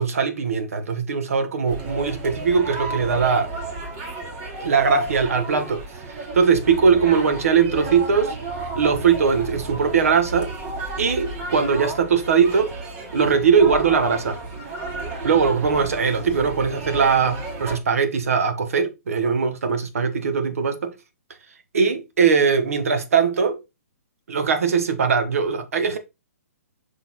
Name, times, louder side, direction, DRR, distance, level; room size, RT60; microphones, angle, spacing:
voice 1, 0.0-3.5 4.6-8.4 8.8-10.5 11.0-12.8 13.1-14.4 15.2-20.9 21.7-23.6 24.3-26.0, right 6 dB, 70° right, 1.4 m, -20 dB
sound 1, 1.7-17.8, right 2 dB, 35° right, 2.3 m, -33 dB
5.7 x 4.2 x 4.2 m
figure-of-eight pair, 130°, 8 cm